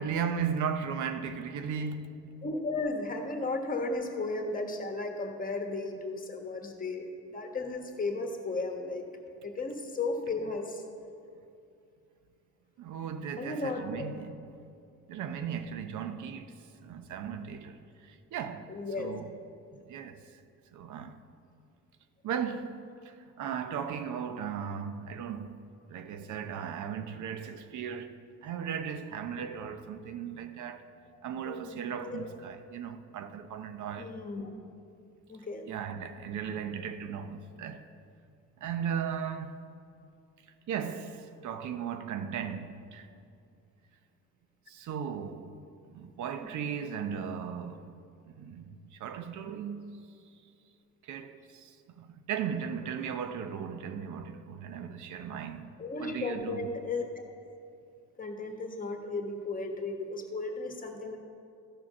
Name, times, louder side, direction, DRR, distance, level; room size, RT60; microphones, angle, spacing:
voice 1, 0.0-2.1 12.8-14.5 15.1-19.3 19.7-20.4 20.7-21.2 22.2-25.6 25.9-30.9 31.2-34.1 35.7-37.8 38.6-39.6 40.7-43.1 44.7-45.5 45.9-47.9 48.4-50.0 51.0-55.7 56.0-56.7, right 7 dB, 75° right, 0.7 m, -37 dB
voice 2, 2.4-9.0 9.4-10.8 13.4-14.1 18.7-19.1 29.4-29.5 31.1-31.2 31.4-32.3 34.0-34.6 35.3-35.7 55.8-57.2 58.2-61.2, left 3 dB, 30° left, 1.4 m, -35 dB
14.0 x 5.0 x 5.9 m
cardioid pair, 90°, 30 cm